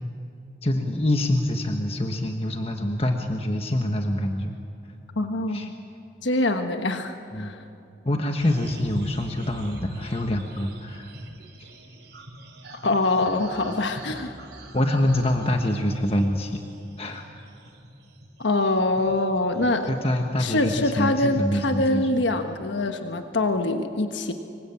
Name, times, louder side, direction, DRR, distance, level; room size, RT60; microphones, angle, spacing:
voice 1, 0.6-4.5 5.5-5.7 7.3-7.5 8.0-11.1 11.6-11.7 13.7-13.8 14.7-16.6 17.0-17.2 19.6-22.1, left 1 dB, 30° left, 4 dB, 1.3 m, -25 dB
voice 2, 5.2-5.7 6.2-7.6 12.8-14.4 18.4-19.9 20.4-24.3, left 2 dB, 80° left, 6 dB, 1.3 m, -24 dB
sound 1, 8.4-21.4 21.7-22.5, right 1 dB, 65° right, 4.4 m, -44 dB
26.0 x 24.0 x 8.6 m, 2.8 s
head